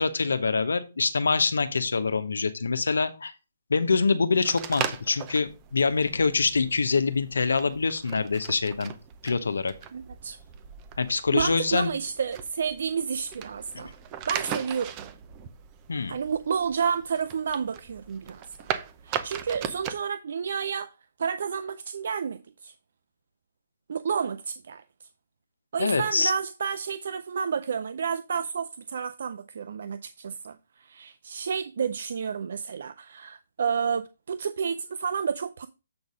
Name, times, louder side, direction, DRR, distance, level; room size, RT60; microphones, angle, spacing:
voice 1, 0.0-3.3 3.7-8.9 9.2-9.7 11.0-11.9 13.7-13.9 15.9-16.1 25.8-26.3, left 4 dB, 80° left, 0.9 m, -25 dB
sound 1, 4.4-20.0, right 9 dB, 25° right, 0.7 m, -38 dB
voice 2, 9.9-10.4 11.1-14.0 14.3-14.9 16.1-18.7 19.0-20.9 21.2-22.7 23.9-24.8 25.7-35.7, right 6 dB, 60° right, 0.4 m, -30 dB
7.7 x 4.0 x 4.8 m
hypercardioid pair, 145°, 0 cm